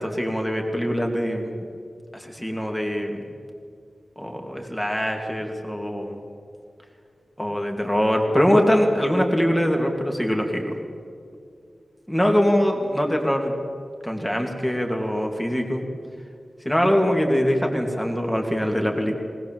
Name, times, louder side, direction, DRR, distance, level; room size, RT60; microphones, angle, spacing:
voice 1, 0.0-1.5 2.1-3.2 4.2-6.2 7.4-10.8 12.1-13.6 14.0-15.8 16.6-19.1, equal, 10° left, 2 dB, 2.8 m, -23 dB
20.0 x 20.0 x 7.8 m, 2.2 s
wide cardioid pair, 115°, 0 cm